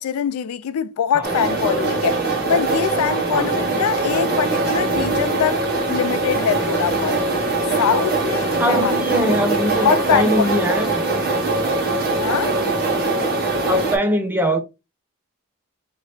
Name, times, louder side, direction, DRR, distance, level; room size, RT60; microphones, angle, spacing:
voice 1, 0.0-7.2 7.8-10.9 12.2-12.6, left 8 dB, 70° left, 0.3 m, -23 dB
sound 1, 1.2-14.0, right 3 dB, 45° right, 1.3 m, -22 dB
voice 2, 8.6-11.1 13.7-14.6, equal, 10° right, 0.7 m, -21 dB
3.3 x 2.8 x 4.2 m
head